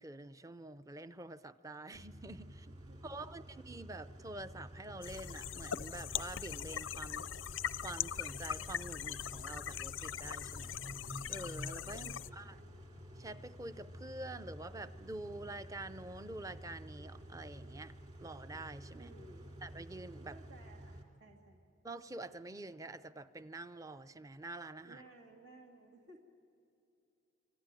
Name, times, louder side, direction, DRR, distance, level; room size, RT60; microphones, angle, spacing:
voice 1, 0.0-2.7 3.0-7.3 7.8-12.6 13.2-17.9 18.2-19.1 19.6-20.4 21.8-25.0, right 2 dB, 15° right, 12 dB, 0.5 m, -47 dB
Car / Idling / Accelerating revving vroom, 1.9-21.0, equal, 35° right, 2.8 m, -51 dB
voice 2, 2.6-3.3 11.9-12.8 18.9-19.5 20.3-21.6 24.8-26.2, right 2 dB, 80° right, -1 dB, 2.5 m, -58 dB
sound 1, 5.0-12.3, left 9 dB, 85° left, 0.5 m, -41 dB
26.0 x 24.5 x 9.1 m, 2.7 s
head